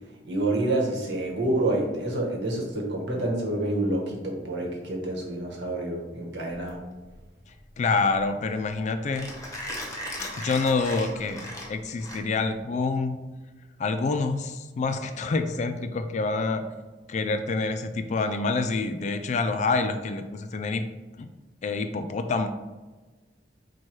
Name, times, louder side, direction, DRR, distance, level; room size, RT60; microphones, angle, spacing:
voice 1, 0.2-6.8, right 1 dB, 75° right, -1 dB, 1.1 m, -28 dB
Mechanisms, 6.7-12.6, left 1 dB, 20° left, 0.8 m, -38 dB
voice 2, 7.8-9.3 10.4-13.2 13.8-16.6 17.1-20.8 21.2-21.3 21.6-22.5, left 3 dB, 40° left, 8 dB, 0.3 m, -27 dB
4.4 x 2.3 x 4.6 m, 1.2 s
head